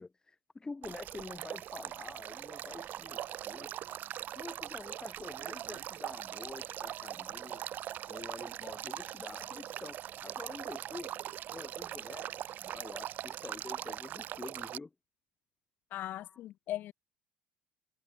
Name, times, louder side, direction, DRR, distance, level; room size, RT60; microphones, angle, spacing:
voice 1, 0.0-3.7 4.4-7.6 8.1-11.1 11.5-12.3 12.6-14.9 16.1-16.4, left 3 dB, 15° left, 4.0 m, -47 dB
Male speech man speaking / Stream / Trickle dribble, 0.8-14.8, right 11 dB, 45° right, 2.0 m, -41 dB
voice 2, 15.9-16.9, left 13 dB, 50° left, 2.3 m, -39 dB
figure-of-eight pair, 60°, 4 cm